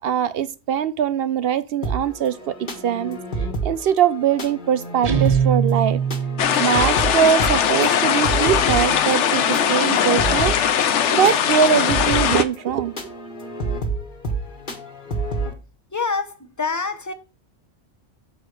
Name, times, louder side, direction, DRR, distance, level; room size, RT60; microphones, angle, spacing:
voice 1, 0.0-3.2 3.6-6.0 6.6-13.1, right 8 dB, 65° right, 0.7 m, -22 dB
sound 1, 1.8-15.5, right 2 dB, 40° left, 1.6 m, -30 dB
Guitar, 5.0-6.7, right 7 dB, 35° right, 0.8 m, -21 dB
sound 2, 6.4-12.4, left 8 dB, 70° left, 1.0 m, -20 dB
voice 2, 15.9-17.1, left 4 dB, 15° left, 0.8 m, -26 dB
6.6 x 4.8 x 6.5 m
omnidirectional pair, 1.3 m